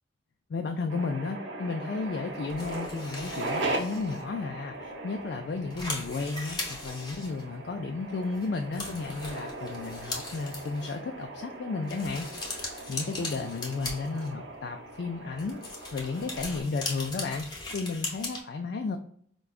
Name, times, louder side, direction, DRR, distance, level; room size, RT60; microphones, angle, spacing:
voice 1, 0.5-12.3 12.9-15.6 15.9-19.0, left 4 dB, 55° left, 4 dB, 0.3 m, -33 dB
sound 1, 0.9-16.6, right 2 dB, 70° right, 0.8 m, -39 dB
sound 2, 2.5-4.2 4.8-4.9 5.2-5.3 5.5-7.9 8.3-8.5 8.7-11.0 11.9-14.5 15.3-18.4, left 2 dB, 20° left, 0.8 m, -39 dB
4.7 x 2.2 x 2.4 m, 0.62 s
head